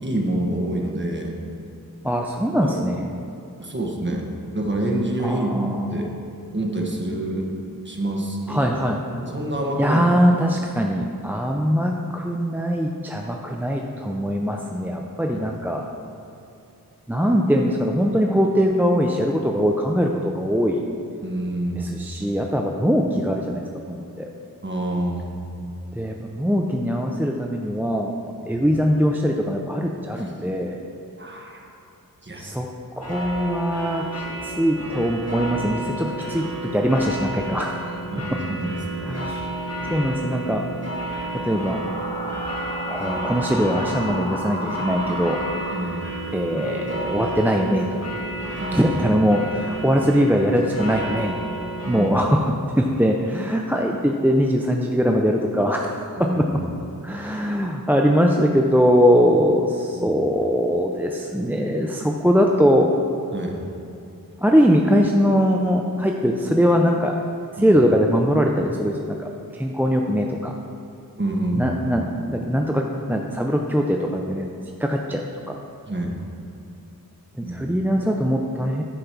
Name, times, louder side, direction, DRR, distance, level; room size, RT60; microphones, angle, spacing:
voice 1, 0.0-1.4 2.5-2.8 3.6-4.3 4.5-6.1 6.5-7.5 7.8-8.7 9.2-10.0 15.3-15.4 21.2-22.0 24.6-25.7 30.2-30.3 31.2-31.7 32.2-32.5 38.1-39.1 45.7-46.1 48.6-48.9 51.8-52.2 56.2-56.6 59.9-60.2 63.3-63.7 67.6-67.8 71.2-71.7 75.9-76.1 77.4-77.6, right 1 dB, 30° right, 0 dB, 1.4 m, -27 dB
voice 2, 2.0-3.0 5.2-5.8 8.5-9.0 9.7-15.8 17.1-20.8 21.8-24.3 25.9-28.1 28.5-30.8 32.4-32.7 33.0-37.9 38.3-38.4 39.0-39.5 39.9-40.6 41.3-41.8 42.9-45.4 46.3-47.9 48.7-51.4 51.9-56.5 57.0-62.9 64.4-67.2 67.6-70.5 71.5-74.5 74.8-75.6 77.4-78.8, equal, 5° right, 1 dB, 0.5 m, -21 dB
sound 1, 33.0-52.1, right 2 dB, 45° left, 1.5 m, -31 dB
sound 2, 41.4-46.4, left 1 dB, 15° left, 1.1 m, -33 dB
10.0 x 5.2 x 5.9 m, 2.6 s
wide cardioid pair, 75°, 36 cm